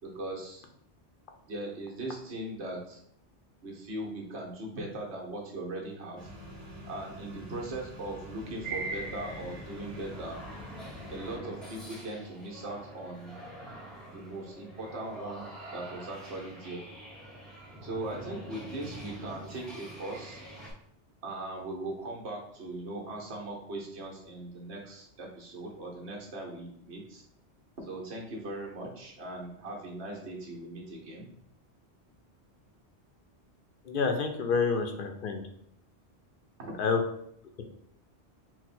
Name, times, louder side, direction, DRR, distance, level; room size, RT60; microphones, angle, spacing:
voice 1, 0.0-0.6 1.4-3.0 3.6-6.3 6.9-10.4 11.1-13.4 14.1-16.8 17.8-20.4 21.2-27.2 27.8-31.3 36.6-36.7, right 2 dB, 70° right, -1 dB, 1.2 m, -39 dB
sound 1, 6.2-11.4, equal, 30° right, 1.3 m, -46 dB
sound 2, 8.6-20.7, right 2 dB, ahead, 0.7 m, -44 dB
voice 2, 33.9-35.4 36.8-37.0, left 5 dB, 60° left, 5 dB, 0.7 m, -28 dB
4.0 x 2.2 x 4.2 m, 0.71 s
omnidirectional pair, 1.2 m